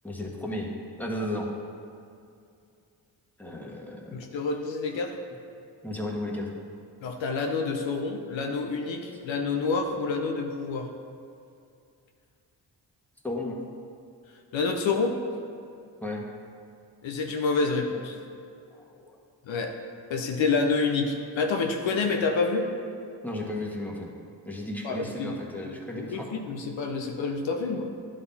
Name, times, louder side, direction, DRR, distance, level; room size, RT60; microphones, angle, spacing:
voice 1, 0.0-0.7 1.0-1.5 3.4-4.1 5.8-6.5 13.2-13.6 16.0-16.2 18.8-19.2 21.0-21.1 23.2-24.1 24.4-26.3, left 1 dB, 5° left, -2 dB, 1.4 m, -34 dB
voice 2, 4.1-5.2 7.0-10.9 14.5-15.2 17.0-18.2 19.5-19.8 20.1-22.7 24.8-25.4 25.6-27.9, left 4 dB, 70° left, 2 dB, 0.8 m, -28 dB
11.0 x 3.8 x 4.2 m, 2.5 s
supercardioid pair, 45°, 47 cm